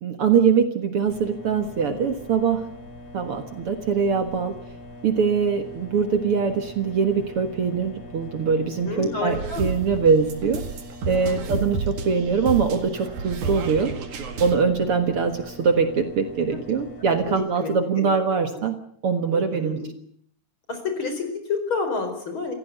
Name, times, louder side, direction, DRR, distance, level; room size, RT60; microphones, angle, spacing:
voice 1, 0.0-2.6 3.1-4.6 5.0-10.6 11.1-13.9 14.4-18.8 19.0-19.8, right 5 dB, 55° right, 7 dB, 2.2 m, -22 dB
sound 1, 1.1-17.3, left 1 dB, 75° left, 6.7 m, -42 dB
voice 2, 8.8-9.6 11.2-11.5 16.5-16.6 17.2-18.1 19.3-19.8 20.7-22.5, left 4 dB, 40° left, 6 dB, 5.4 m, -30 dB
sound 2, 9.3-14.6, right 4 dB, 85° right, 3.4 m, -31 dB
28.5 x 15.0 x 8.1 m, 0.64 s
omnidirectional pair, 3.3 m